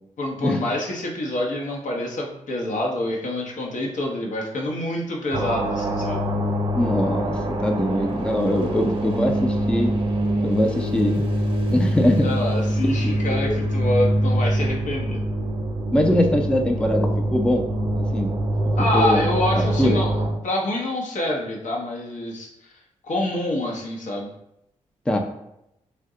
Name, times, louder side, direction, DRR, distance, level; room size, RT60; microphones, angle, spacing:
voice 1, 0.2-6.2 12.2-15.2 18.8-20.1 20.4-22.5 23.0-24.3, left 1 dB, 65° left, -1 dB, 0.7 m, -26 dB
sound 1, 5.3-20.3, right 1 dB, 40° right, 0.7 m, -24 dB
voice 2, 6.8-9.9 10.4-11.2 11.7-12.3 13.3-13.6 15.9-17.6 18.0-18.3 18.9-19.3 19.6-20.0 25.1-25.2, left 1 dB, 5° left, 2 dB, 0.4 m, -22 dB
2.6 x 2.1 x 3.6 m, 0.81 s
supercardioid pair, 45°, 14 cm